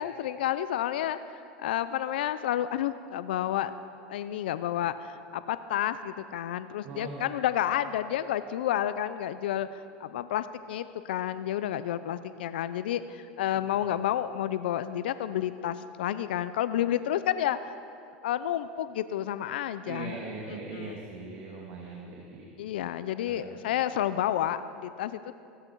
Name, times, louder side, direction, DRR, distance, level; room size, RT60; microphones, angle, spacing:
voice 1, 0.0-3.7 4.1-17.7 18.2-20.2 20.5-20.9 22.6-25.3, left 11 dB, 85° left, 13 dB, 0.5 m, -30 dB
voice 2, 6.8-7.3 19.8-22.5 23.2-23.4, right 3 dB, 55° right, -2 dB, 2.3 m, -40 dB
17.0 x 13.5 x 4.6 m, 2.5 s
supercardioid pair, 115°, 5 cm